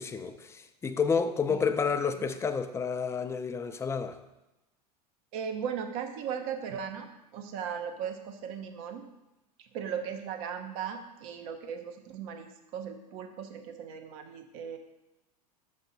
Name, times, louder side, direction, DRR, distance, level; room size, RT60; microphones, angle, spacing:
voice 1, 0.0-4.2, left 5 dB, 15° left, 0.5 m, -30 dB
voice 2, 5.3-9.1 9.6-14.8, right 7 dB, 60° right, 0.9 m, -37 dB
6.3 x 5.4 x 4.0 m
hypercardioid pair, 105°, 20 cm